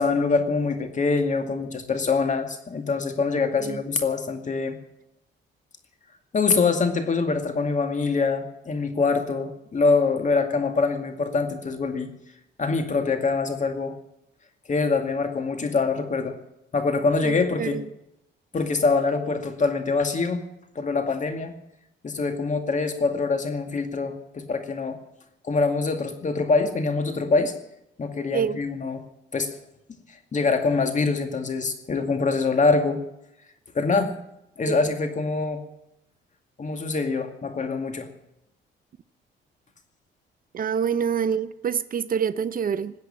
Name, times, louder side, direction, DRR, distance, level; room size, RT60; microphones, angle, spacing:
voice 1, 0.0-4.8 6.3-12.1 12.6-14.0 14.7-16.4 16.7-17.8 18.5-20.5 20.8-21.6 22.0-25.0 25.4-27.5 28.0-29.0 29.3-29.5 30.3-33.0 33.7-34.1 34.6-35.6 36.6-38.1, left 4 dB, 40° left, 2.2 m, -24 dB
voice 2, 17.3-17.8 28.3-28.6 34.7-34.8 40.5-42.9, right 7 dB, 45° right, 0.6 m, -26 dB
20.5 x 8.1 x 8.7 m
cardioid pair, 90°, 20 cm